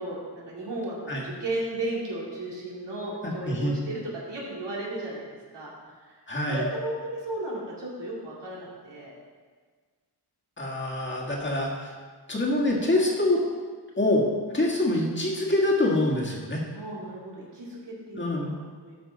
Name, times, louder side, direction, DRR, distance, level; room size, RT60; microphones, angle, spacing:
voice 1, 0.0-4.0 4.3-5.3 5.5-6.2 6.5-9.1 16.7-19.0, right 1 dB, 80° right, -5 dB, 2.6 m, -35 dB
voice 2, 3.2-3.8 6.3-6.6 10.6-11.9 12.3-13.4 14.0-14.3 14.5-16.6 18.1-18.5, left 1 dB, 25° left, -3 dB, 1.7 m, -25 dB
12.5 x 5.8 x 4.0 m, 1.5 s
wide cardioid pair, 135°, 41 cm